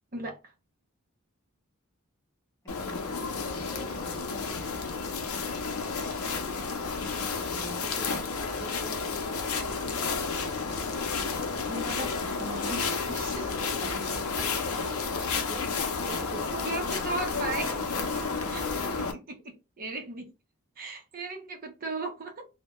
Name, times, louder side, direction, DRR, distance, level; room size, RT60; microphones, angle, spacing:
voice 1, 0.1-0.5 11.7-13.6 13.8-14.5 16.5-17.7 18.5-20.3 20.8-22.5, right 2 dB, 40° right, 0.6 m, -37 dB
voice 2, 2.6-4.2 7.0-9.4 9.7-10.5 14.2-17.2 17.6-17.8, right 2 dB, 15° left, 0.8 m, -46 dB
sound 1, 2.7-19.1, left 4 dB, 75° left, 0.6 m, -31 dB
2.2 x 2.1 x 2.9 m
head